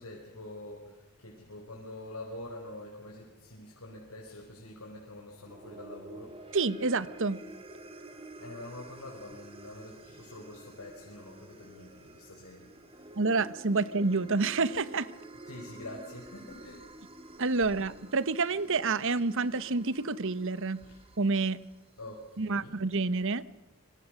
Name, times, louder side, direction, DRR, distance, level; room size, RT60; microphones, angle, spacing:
voice 1, 0.0-6.4 8.4-13.1 15.5-16.8 20.8-21.0 22.0-22.7, left 1 dB, 85° left, -1 dB, 5.1 m, -46 dB
sound 1, 5.3-21.8, right 2 dB, 25° right, 2.4 m, -49 dB
voice 2, 6.5-7.4 13.2-15.1 17.4-20.8 21.2-21.6 22.4-23.4, right 3 dB, 60° right, 17 dB, 1.1 m, -28 dB
27.0 x 24.5 x 6.5 m, 1.1 s
head